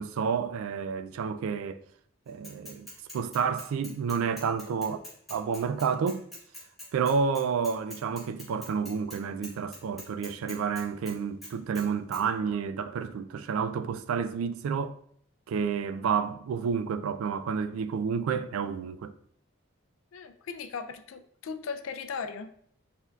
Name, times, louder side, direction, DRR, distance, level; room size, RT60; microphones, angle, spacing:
voice 1, 0.0-1.8 2.3-2.9 3.1-5.0 5.3-6.2 6.9-15.0 15.5-19.1, right 6 dB, 80° right, 0.3 m, -30 dB
Bicycle / Mechanisms, 2.4-9.2 9.4-11.1 11.4-11.8 12.1-12.2, left 1 dB, ahead, 1.4 m, -44 dB
voice 2, 20.1-22.5, left 5 dB, 75° left, 0.4 m, -37 dB
4.4 x 3.6 x 2.3 m
head